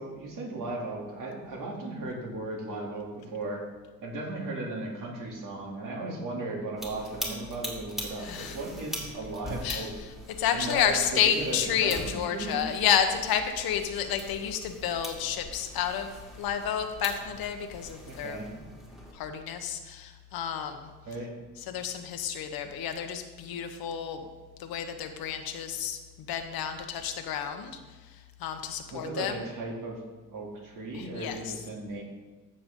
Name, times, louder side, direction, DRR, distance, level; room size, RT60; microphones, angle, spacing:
voice 1, 0.0-3.6 4.0-9.9 10.5-12.6 18.1-18.5 21.0-21.3 28.9-30.0 30.3-32.0, right 2 dB, 65° right, -2 dB, 2.9 m, -36 dB
sound 1, 6.8-19.1, equal, ahead, 2.2 m, -42 dB
voice 2, 8.2-8.6 9.6-9.9 10.4-18.4 19.1-20.9 21.7-24.2 24.6-26.0 26.3-29.4 30.9-31.5, left 8 dB, 85° left, 7 dB, 1.1 m, -30 dB
14.5 x 6.7 x 3.8 m, 1.3 s
cardioid pair, 130°, 35 cm